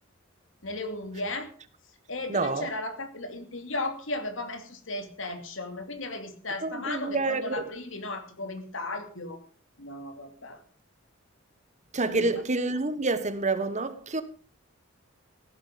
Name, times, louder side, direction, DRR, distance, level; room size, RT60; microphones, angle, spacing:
voice 1, 0.6-1.5 2.1-9.4 9.8-10.6 12.1-12.3, left 2 dB, 65° left, 2.7 m, -35 dB
voice 2, 2.3-2.7 6.6-7.7 11.9-14.2, right 3 dB, 35° right, 1.3 m, -28 dB
16.0 x 12.0 x 5.1 m
head